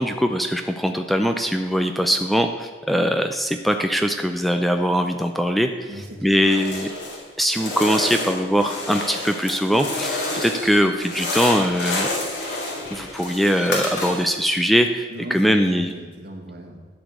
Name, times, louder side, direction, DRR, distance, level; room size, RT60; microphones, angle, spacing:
voice 1, 0.0-5.9 6.2-6.9 7.4-12.1 12.9-15.9, equal, ahead, 6 dB, 0.5 m, -21 dB
voice 2, 5.9-6.5 15.1-16.9, right 1 dB, 65° right, 0 dB, 2.2 m, -37 dB
sound 1, 6.4-7.2 7.5-10.7 11.0-14.4, left 2 dB, 75° left, 2.6 m, -29 dB
sound 2, 9.4-15.8, equal, 45° left, 2.3 m, -42 dB
12.5 x 5.1 x 8.1 m, 1.4 s
head